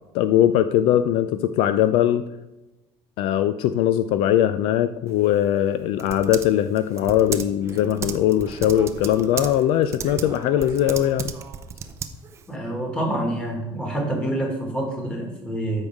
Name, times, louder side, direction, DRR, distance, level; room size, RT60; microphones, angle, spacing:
voice 1, 0.1-2.3 3.2-11.3, left 11 dB, 65° left, 12 dB, 0.4 m, -20 dB
Typing, 5.1-12.5, right 7 dB, 25° right, 0.5 m, -35 dB
voice 2, 12.5-15.9, right 1 dB, 10° left, -1 dB, 2.0 m, -27 dB
13.5 x 5.5 x 3.6 m, 1.0 s
cardioid pair, 170°, 10 cm